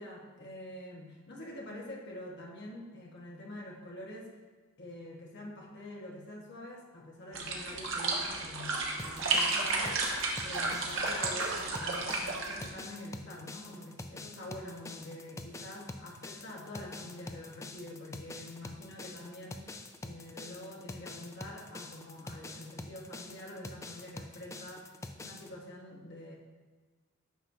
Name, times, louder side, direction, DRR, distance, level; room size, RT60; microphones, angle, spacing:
voice 1, 0.0-4.3 4.8-10.1 10.4-26.4, left 1 dB, 55° left, -2 dB, 1.3 m, -46 dB
sound 1, 7.3-12.7, right 3 dB, 65° right, 1.3 m, -32 dB
sound 2, 9.0-25.5, left 2 dB, 15° left, 0.3 m, -46 dB
9.9 x 6.2 x 2.7 m, 1.4 s
head